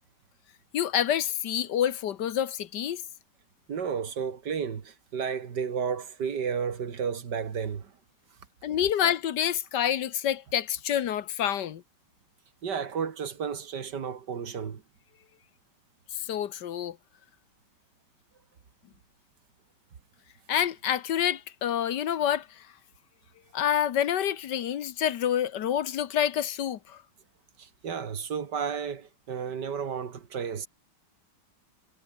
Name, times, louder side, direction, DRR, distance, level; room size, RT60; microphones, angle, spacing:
voice 1, 0.7-3.0 8.6-11.8 16.1-17.0 20.5-22.7 23.5-27.0, left 10 dB, 75° left, 1.6 m, -28 dB
voice 2, 3.7-7.9 12.6-14.8 27.6-30.7, right 6 dB, 70° right, 2.4 m, -32 dB
omnidirectional pair, 1.9 m